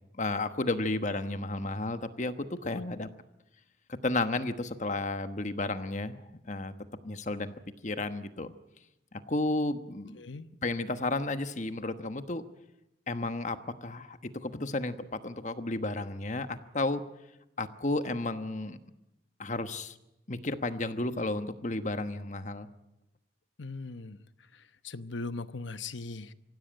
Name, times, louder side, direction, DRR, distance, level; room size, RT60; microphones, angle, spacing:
voice 1, 0.1-3.1 4.0-6.7 7.0-7.5 7.8-8.5 9.3-10.2 10.6-12.4 13.1-17.0 17.6-18.8 19.4-20.0 20.3-22.7, left 2 dB, 40° left, 10 dB, 1.2 m, -32 dB
voice 2, 10.2-10.5 23.6-24.2 24.5-26.3, left 3 dB, 85° left, 12 dB, 1.0 m, -39 dB
24.5 x 16.0 x 8.9 m, 0.89 s
head